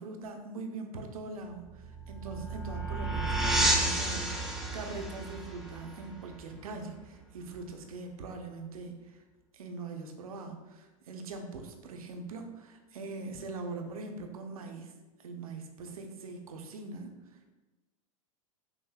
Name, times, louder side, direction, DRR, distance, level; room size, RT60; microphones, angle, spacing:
voice 1, 0.0-9.2 9.5-14.9 15.2-17.5, right 3 dB, 80° right, 4 dB, 0.6 m, -42 dB
sound 1, 1.6-7.0, right 2 dB, ahead, 0.5 m, -31 dB
5.6 x 2.7 x 2.2 m, 1.1 s
hypercardioid pair, 105°, 18 cm